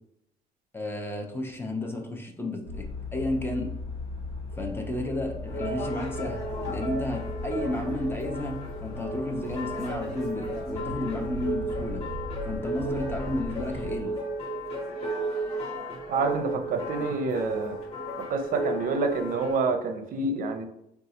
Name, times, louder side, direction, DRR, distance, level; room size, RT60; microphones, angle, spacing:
voice 1, 0.7-3.7 4.6-12.1 12.4-14.1, left 1 dB, 15° left, 2 dB, 0.6 m, -32 dB
sound 1, 2.7-14.0, left 3 dB, 80° left, 1.3 m, -38 dB
sound 2, 5.4-19.6, right 1 dB, 35° left, 1.2 m, -34 dB
voice 2, 16.1-17.8 18.2-20.7, right 3 dB, 55° right, 7 dB, 0.5 m, -28 dB
3.8 x 2.3 x 2.8 m, 0.79 s
cardioid pair, 110°, 17 cm